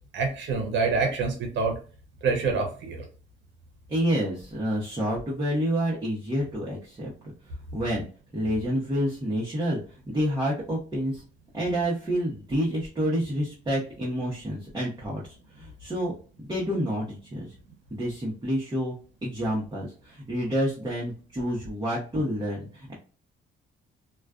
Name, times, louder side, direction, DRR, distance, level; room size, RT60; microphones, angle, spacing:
voice 1, 0.1-1.8 2.2-3.1, right 4 dB, 65° right, 3 dB, 0.8 m, -26 dB
voice 2, 3.9-7.1 7.7-8.0 8.3-9.8 10.1-11.2 11.5-15.2 15.6-16.1 16.4-17.5 17.9-19.0 19.2-22.9, equal, 20° right, -5 dB, 0.9 m, -28 dB
2.3 x 2.3 x 2.4 m, 0.38 s
cardioid pair, 90°, 20 cm